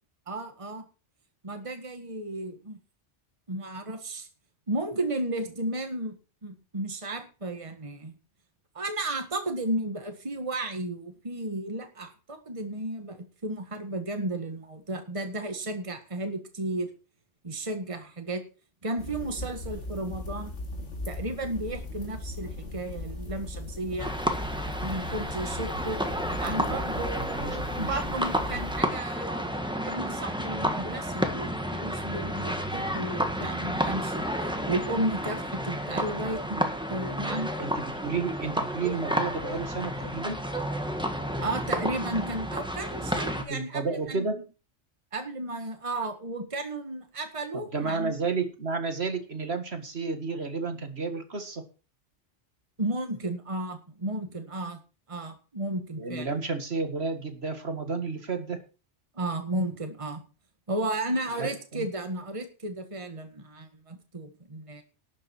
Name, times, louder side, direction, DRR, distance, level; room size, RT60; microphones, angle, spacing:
voice 1, 0.3-0.8 1.4-2.8 3.5-4.3 4.7-6.2 6.4-8.1 8.8-16.9 17.4-18.4 18.8-20.5 21.1-24.1 24.8-26.0 26.4-34.3 34.7-36.6 36.9-37.5 41.4-44.4 45.1-48.2 52.8-54.8 55.1-56.4 59.1-60.2 60.7-64.8, right 1 dB, 25° right, 6 dB, 1.8 m, -33 dB
sound 1, 19.0-28.8, left 1 dB, 75° left, 2.8 m, -38 dB
sound 2, 24.0-43.4, equal, 5° right, 1.7 m, -31 dB
voice 2, 27.2-28.0 37.6-40.4 43.5-44.4 47.7-51.7 56.0-58.6 61.4-61.9, right 4 dB, 60° right, 7 dB, 2.1 m, -32 dB
12.0 x 7.4 x 7.1 m, 0.34 s
omnidirectional pair, 1.2 m